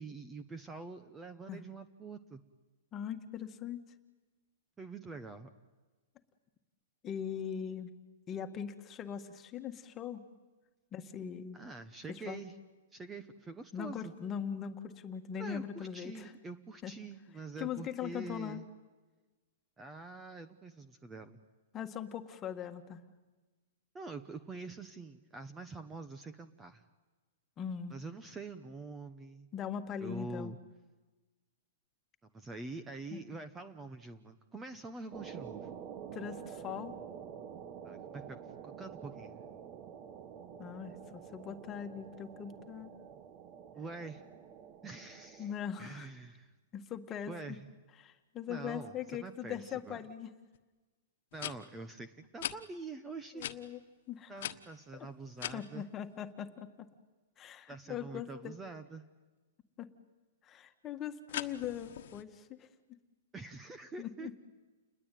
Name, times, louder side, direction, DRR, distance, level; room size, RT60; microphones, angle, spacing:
voice 1, 0.0-2.4 4.8-5.5 11.5-12.6 12.9-14.1 15.4-18.7 19.8-21.4 23.9-26.8 27.9-29.5 30.0-30.6 32.3-35.7 37.8-38.4 38.6-39.4 43.7-44.2 44.8-45.5 45.8-46.5 47.2-47.7 48.5-50.0 51.3-53.5 54.3-55.9 57.7-59.0 63.3-64.4, right 3 dB, 10° right, 11 dB, 1.1 m, -45 dB
voice 2, 2.9-3.8 7.0-7.9 8.3-10.2 10.9-11.6 12.3-12.4 13.7-16.3 16.8-16.9 17.6-18.6 21.7-23.0 27.6-28.0 29.5-30.5 33.1-33.2 36.1-36.9 40.6-42.9 45.4-46.1 46.7-47.6 48.0-50.3 53.4-53.8 54.1-54.3 54.9-55.1 55.5-56.9 57.4-58.5 59.8-59.9 60.4-62.7 64.0-64.4, left 8 dB, 20° left, 8 dB, 1.8 m, -41 dB
sound 1, 35.1-45.5, right 8 dB, 30° right, 1.5 m, -48 dB
sound 2, 50.5-50.6 51.3-51.5 52.4-52.6 53.4-53.6 54.4-55.6 61.3-62.2, left 12 dB, 60° left, 1.5 m, -40 dB
29.5 x 21.0 x 9.4 m, 1.2 s
hypercardioid pair, 155°, 0 cm